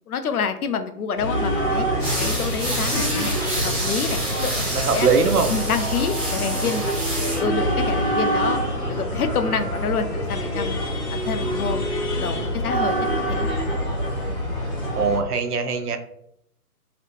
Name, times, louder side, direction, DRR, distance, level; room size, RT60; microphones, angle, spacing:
voice 1, 0.1-1.9 2.2-3.4 3.6-5.1 5.5-7.1 7.4-8.6 8.9-10.8 11.1-11.9 12.2-13.5, left 6 dB, 70° left, 9 dB, 0.5 m, -28 dB
sound 1, 1.2-15.2, equal, 45° left, 1.2 m, -25 dB
sound 2, 2.0-7.4, right 1 dB, 10° right, 0.6 m, -29 dB
voice 2, 4.7-5.5 15.0-16.0, right 5 dB, 75° right, 7 dB, 0.6 m, -21 dB
2.9 x 2.8 x 3.1 m, 0.74 s
figure-of-eight pair, 145°, 47 cm